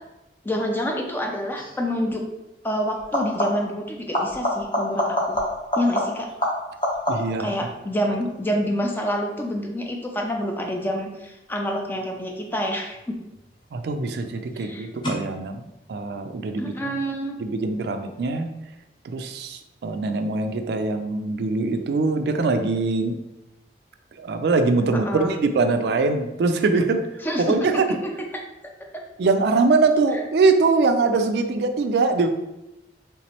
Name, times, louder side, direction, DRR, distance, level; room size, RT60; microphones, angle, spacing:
voice 1, 0.4-2.2 2.6-5.4 5.8-6.3 7.4-13.1 14.5-14.9 16.6-17.4 24.9-25.3 27.2-28.0, equal, 10° left, 1 dB, 0.4 m, -27 dB
sound 1, 1.6-1.8 3.0-3.8 4.1-7.5 12.9-13.5 15.0-15.1, left 1 dB, 30° left, 0.7 m, -26 dB
voice 2, 7.1-7.6 13.7-15.6 15.9-16.7 17.4-18.5 19.0-23.1 24.2-27.0 27.4-28.0 29.2-32.3, right 3 dB, 65° right, 7 dB, 0.3 m, -22 dB
3.4 x 3.0 x 2.8 m, 0.95 s
head